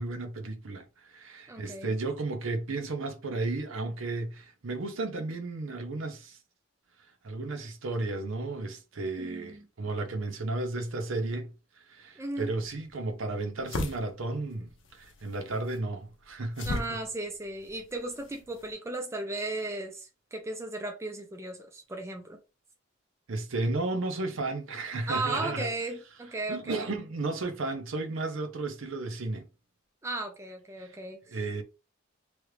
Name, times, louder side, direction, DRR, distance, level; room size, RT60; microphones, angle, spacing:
voice 1, 0.0-6.4 7.2-17.0 23.3-25.7 26.5-29.4 30.8-30.9 31.3-31.6, right 2 dB, 65° right, 0.7 m, -33 dB
voice 2, 1.5-1.9 9.2-9.6 12.2-12.5 16.6-22.4 25.1-26.9 30.0-31.2, right 2 dB, 15° right, 0.4 m, -36 dB
sound 1, 12.4-18.7, left 2 dB, 60° left, 0.6 m, -40 dB
3.1 x 2.4 x 3.2 m
head